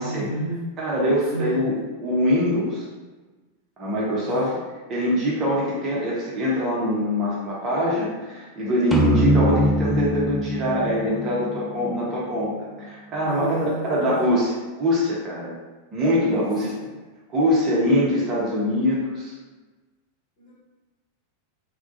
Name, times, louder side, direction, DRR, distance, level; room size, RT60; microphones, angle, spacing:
voice 1, 0.0-0.6 1.3-1.7 4.2-4.5 13.2-14.2 16.3-16.9 20.4-20.5, right 2 dB, 45° left, -8 dB, 1.3 m, -31 dB
voice 2, 0.8-2.9 3.8-4.5 4.9-12.5 12.8-15.5 15.9-16.7 17.3-19.3, equal, 30° right, -6 dB, 0.7 m, -23 dB
sound 1, 8.9-12.4, equal, 5° right, 0.3 m, -22 dB
2.2 x 2.1 x 2.6 m, 1.3 s
figure-of-eight pair, 90°, 0 cm